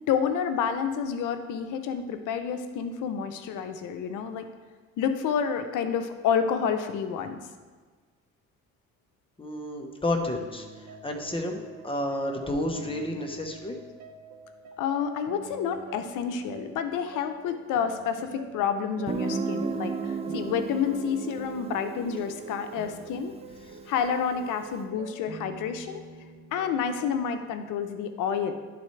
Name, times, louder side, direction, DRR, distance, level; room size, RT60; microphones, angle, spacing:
voice 1, 0.1-4.4 5.0-7.4 14.8-23.3 23.9-26.0 26.5-28.5, left 7 dB, 90° left, 8 dB, 0.7 m, -29 dB
voice 2, 9.4-13.8, left 1 dB, 20° left, 3 dB, 1.0 m, -31 dB
sound 1, 10.2-27.7, right 5 dB, 60° right, 0.9 m, -47 dB
Guitar, 19.1-24.6, right 5 dB, 20° right, 0.5 m, -35 dB
11.0 x 4.1 x 3.2 m, 1.5 s
cardioid pair, 90°, 30 cm